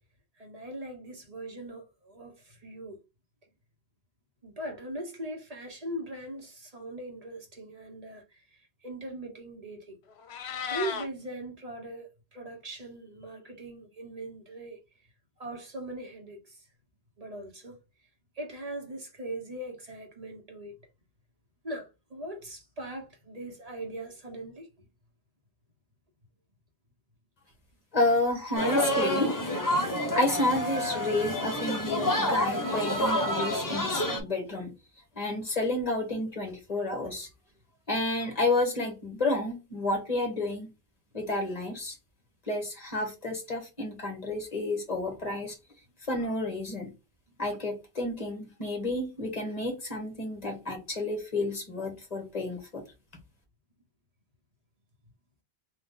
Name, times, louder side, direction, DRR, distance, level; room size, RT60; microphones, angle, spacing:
voice 1, 0.4-3.0 4.4-8.2 8.8-10.0 10.7-14.8 15.4-16.5 17.2-17.8 18.4-20.8 21.6-24.7, right 1 dB, 35° right, 1.2 m, -40 dB
Meow, 10.1-11.1, left 8 dB, 80° left, 0.9 m, -34 dB
voice 2, 27.9-29.4 30.1-34.7 35.1-37.3 37.9-40.7 41.1-41.9 42.5-45.6 46.1-46.9 47.4-52.8, left 2 dB, 40° left, 1.6 m, -30 dB
sound 1, 28.5-34.2, left 1 dB, 20° left, 0.8 m, -28 dB
3.7 x 2.6 x 3.7 m
omnidirectional pair, 1.1 m